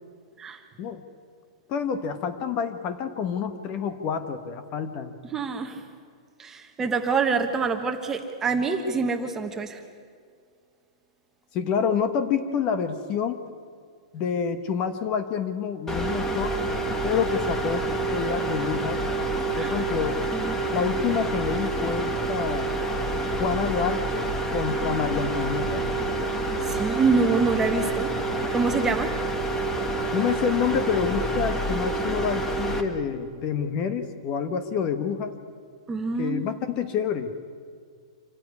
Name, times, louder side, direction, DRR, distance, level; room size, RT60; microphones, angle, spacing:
voice 1, 1.7-5.1 11.5-13.4 14.1-16.6 17.0-19.0 19.6-20.2 20.7-22.7 23.3-25.9 30.1-35.3 36.2-37.3, left 7 dB, 30° left, 9 dB, 1.2 m, -28 dB
voice 2, 5.3-5.8 6.4-9.8 19.6-19.7 20.3-20.6 26.7-28.1 28.5-29.1 35.9-36.4, right 4 dB, 10° right, 5 dB, 1.4 m, -26 dB
sound 1, 15.9-32.8, right 2 dB, 10° left, 1.5 m, -28 dB
26.5 x 15.0 x 9.6 m, 2.1 s
supercardioid pair, 165°, 3 cm